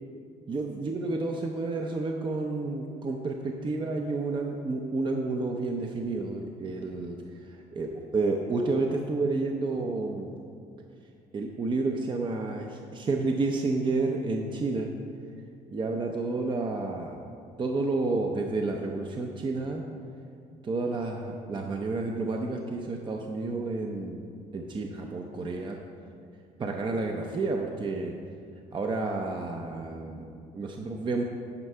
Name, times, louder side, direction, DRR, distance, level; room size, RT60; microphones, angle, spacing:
voice 1, 0.5-7.2 7.7-10.4 11.3-14.9 15.7-17.2 17.6-19.8 20.6-24.2 24.5-25.8 26.6-28.1 28.7-31.2, right 3 dB, 30° right, 2 dB, 0.6 m, -30 dB
9.7 x 4.7 x 5.4 m, 2.4 s
cardioid pair, 110°, 17 cm